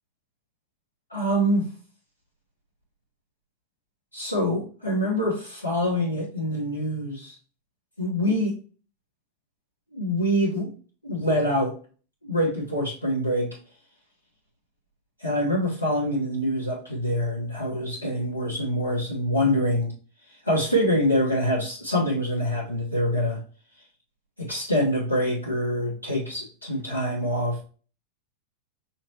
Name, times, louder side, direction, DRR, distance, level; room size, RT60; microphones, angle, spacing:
voice 1, 1.1-1.7 4.1-7.3 8.0-8.6 9.9-10.7 11.0-11.7 12.2-13.6 15.2-19.9 20.4-23.4 24.4-27.6, equal, 85° left, -6 dB, 1.2 m, -25 dB
5.7 x 3.0 x 2.9 m, 0.38 s
figure-of-eight pair, 90°, 0 cm